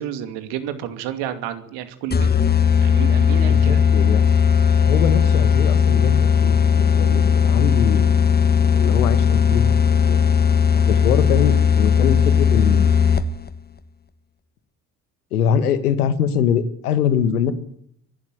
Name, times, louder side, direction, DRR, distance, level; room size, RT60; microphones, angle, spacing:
voice 1, 0.0-2.3 2.8-3.8, right 10 dB, 65° right, 10 dB, 2.7 m, -30 dB
sound 1, 2.1-13.5, left 7 dB, 20° left, 1.4 m, -17 dB
voice 2, 3.5-4.3 4.8-8.1 8.7-10.2 10.7-13.1 15.3-17.5, left 8 dB, 80° left, 13 dB, 1.7 m, -23 dB
24.5 x 12.0 x 9.4 m, 0.67 s
hypercardioid pair, 55°, 45 cm